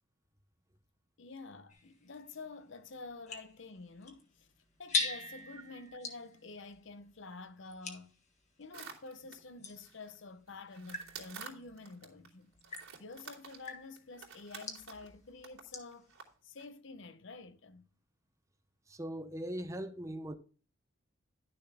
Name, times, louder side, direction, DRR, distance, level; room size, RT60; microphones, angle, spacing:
voice 1, 1.2-4.5 4.8-8.1 8.6-12.5 13.0-16.1 16.4-17.9, left 3 dB, 60° left, 0.7 m, -49 dB
sound 1, 1.7-9.0 9.6-16.0, left 4 dB, 35° left, 1.6 m, -43 dB
sound 2, 8.7-10.1 10.5-12.3 12.6-15.1 15.4-15.6 15.9-16.2 16.6-16.7, right 6 dB, 85° right, 2.8 m, -50 dB
voice 2, 18.9-20.4, equal, 15° right, 0.7 m, -40 dB
11.5 x 6.8 x 3.5 m
head